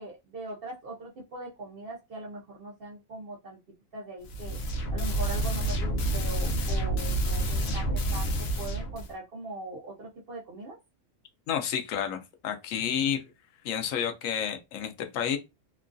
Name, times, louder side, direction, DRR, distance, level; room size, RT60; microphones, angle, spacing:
voice 1, 0.0-3.6 3.9-4.6 4.9-10.8, right 2 dB, 55° right, 0.7 m, -41 dB
sound 1, 4.2-9.1, right 1 dB, 60° left, 0.8 m, -28 dB
voice 2, 11.5-13.2 13.6-15.4, left 8 dB, 90° left, 1.0 m, -30 dB
3.0 x 2.2 x 2.5 m
omnidirectional pair, 1.3 m